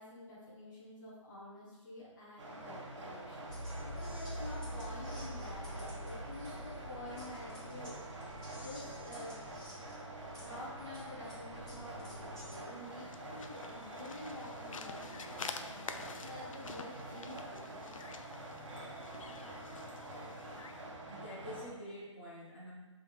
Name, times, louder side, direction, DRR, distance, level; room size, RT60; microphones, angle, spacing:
voice 1, 0.0-9.4 10.4-17.9, left 1 dB, 40° left, -8 dB, 1.0 m, -49 dB
sound 1, 2.4-21.6, right 2 dB, 65° right, 1.1 m, -47 dB
sound 2, 3.5-12.6, equal, 5° left, 1.3 m, -46 dB
sound 3, 12.6-20.9, left 5 dB, 85° left, 0.4 m, -49 dB
voice 2, 21.1-22.7, equal, 20° left, -7 dB, 0.4 m, -46 dB
5.5 x 3.4 x 2.4 m, 1.2 s
hypercardioid pair, 175°, 17 cm